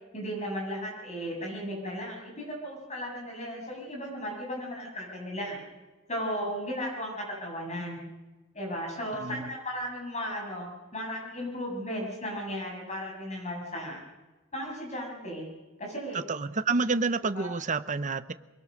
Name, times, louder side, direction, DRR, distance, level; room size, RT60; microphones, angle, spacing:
voice 1, 0.1-5.6 6.1-8.1 8.5-14.0 14.5-15.5 15.8-16.2 17.4-17.5, equal, 30° left, 0 dB, 7.6 m, -35 dB
voice 2, 9.2-9.5 16.1-18.3, right 4 dB, 35° right, 12 dB, 0.8 m, -29 dB
23.0 x 22.5 x 6.5 m, 1.2 s
head